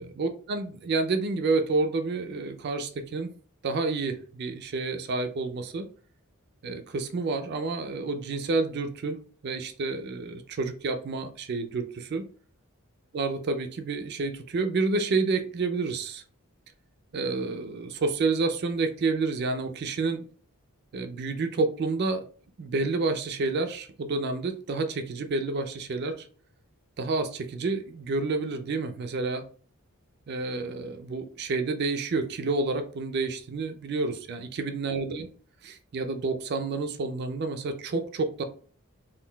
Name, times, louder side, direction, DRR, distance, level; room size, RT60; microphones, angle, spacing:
voice 1, 0.0-3.3 3.6-5.9 6.6-9.2 9.4-12.3 13.1-16.2 17.1-20.2 20.9-22.3 22.6-26.3 27.0-29.4 30.3-35.3 35.6-38.4, right 3 dB, 50° right, 8 dB, 0.4 m, -29 dB
3.7 x 2.2 x 2.2 m, 0.42 s
head